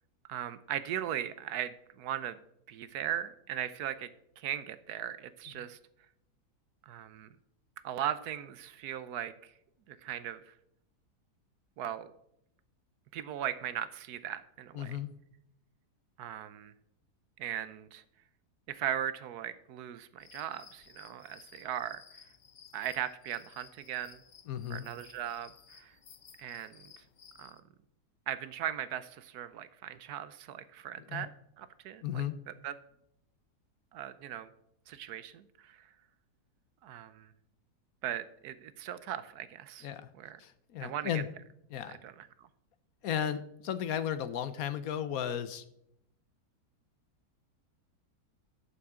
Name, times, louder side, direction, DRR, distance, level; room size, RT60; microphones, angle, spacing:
voice 1, 0.3-2.4 2.7-4.1 4.4-5.8 6.9-7.3 7.8-9.5 9.9-10.5 11.8-12.1 13.1-15.0 16.2-16.7 17.4-18.0 18.7-22.0 22.7-24.2 24.7-25.9 26.4-26.9 27.4-27.6 28.3-31.3 31.6-32.7 33.9-34.5 34.9-35.9 36.8-37.3 38.0-39.9 40.2-40.4 40.8-41.2 41.9-42.5, right 10 dB, 75° right, 14 dB, 1.1 m, -38 dB
voice 2, 14.7-15.1 24.5-24.9 31.1-31.3 32.0-32.4 39.8-40.1 40.4-41.3 41.7-42.0 43.0-45.6, left 9 dB, 65° left, 13 dB, 1.0 m, -35 dB
sound 1, 20.2-27.6, left 7 dB, 85° left, 0.4 m, -57 dB
11.5 x 8.5 x 3.7 m, 0.75 s
omnidirectional pair, 1.8 m